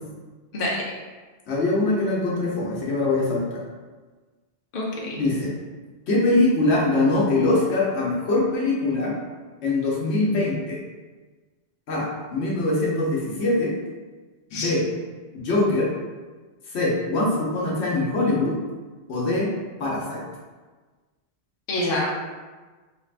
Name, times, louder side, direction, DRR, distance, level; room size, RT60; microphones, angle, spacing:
voice 1, 1.5-3.6 5.2-5.5 6.1-9.1 9.6-10.8 11.9-13.7 14.5-14.9 15.3-15.9 16.7-18.6 19.1-19.5 19.8-20.2, left 2 dB, 80° left, -4 dB, 1.1 m, -23 dB
voice 2, 4.7-5.2 14.5-14.7 21.7-22.1, left 1 dB, 60° left, -4 dB, 0.9 m, -26 dB
3.5 x 2.4 x 3.3 m, 1.3 s
omnidirectional pair, 1.1 m